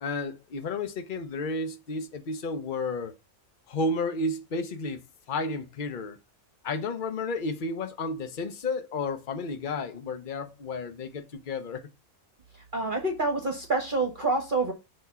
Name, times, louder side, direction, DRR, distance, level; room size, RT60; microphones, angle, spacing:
voice 1, 0.0-3.1 3.7-5.0 5.3-6.2 6.6-11.8, left 3 dB, 40° left, 0.9 m, -32 dB
voice 2, 12.7-14.7, right 3 dB, 40° right, 1.3 m, -27 dB
7.0 x 3.1 x 5.4 m
omnidirectional pair, 1.5 m